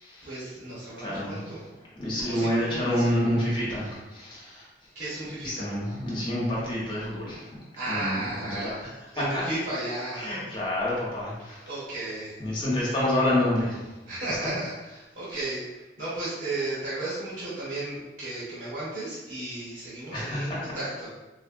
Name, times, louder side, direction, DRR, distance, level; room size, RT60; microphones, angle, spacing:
voice 1, 0.2-1.6 2.2-3.1 4.9-5.7 7.7-8.8 9.1-10.3 11.6-12.4 14.0-21.1, right 2 dB, 60° right, -10 dB, 1.1 m, -34 dB
voice 2, 1.0-1.4 2.0-4.7 5.4-7.6 7.9-8.7 9.2-9.4 10.2-11.7 12.4-13.9 20.1-20.6, left 1 dB, 30° left, -6 dB, 0.9 m, -28 dB
3.9 x 2.0 x 2.5 m, 1.1 s
head